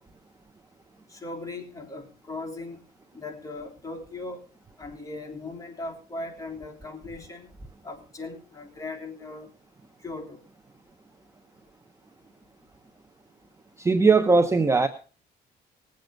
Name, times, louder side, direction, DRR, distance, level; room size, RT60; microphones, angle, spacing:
voice 1, 1.1-2.8 3.1-4.4 4.8-7.5 7.8-9.5 10.0-10.4, left 2 dB, 20° left, 1 dB, 3.3 m, -38 dB
voice 2, 13.8-14.9, right 4 dB, 15° right, 8 dB, 0.9 m, -19 dB
19.0 x 7.9 x 5.2 m, 0.37 s
cardioid pair, 110°, 17 cm